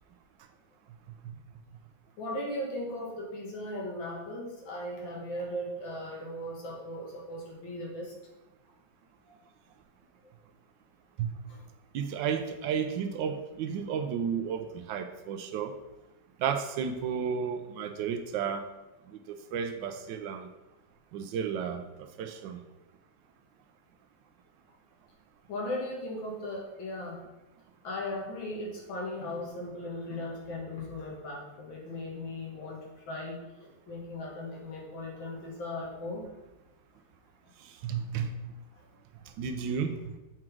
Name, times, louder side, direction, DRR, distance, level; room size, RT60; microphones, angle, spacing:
voice 1, 2.2-8.1 11.5-11.7 25.5-27.2 27.8-36.3 38.7-38.9, left 1 dB, 85° left, -2 dB, 2.2 m, -37 dB
voice 2, 11.9-15.7 16.4-18.6 19.1-20.5 21.1-22.6 37.6-38.3 39.4-40.0, right 7 dB, 75° right, 7 dB, 1.3 m, -33 dB
7.4 x 3.6 x 4.5 m, 1.0 s
omnidirectional pair, 2.1 m